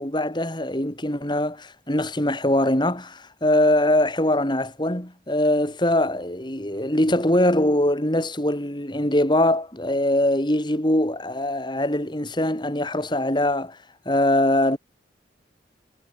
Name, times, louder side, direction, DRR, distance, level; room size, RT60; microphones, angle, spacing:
voice 1, 0.0-13.8 14.0-14.8, left 1 dB, 25° left, 3.2 m, -22 dB
head